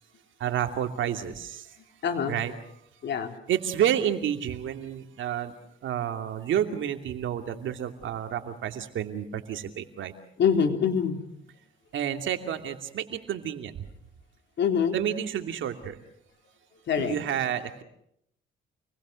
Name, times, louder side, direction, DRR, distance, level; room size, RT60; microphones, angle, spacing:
voice 1, 0.4-1.7 2.3-2.5 3.5-5.5 5.8-10.1 11.9-13.7 14.9-16.0 17.0-17.8, right 10 dB, 75° right, 6 dB, 2.7 m, -30 dB
voice 2, 2.0-2.4 3.0-3.3 10.4-11.2 14.6-15.0 16.9-17.2, left 7 dB, 65° left, 5 dB, 3.6 m, -24 dB
28.5 x 20.5 x 6.5 m, 0.73 s
cardioid pair, 90°, 20 cm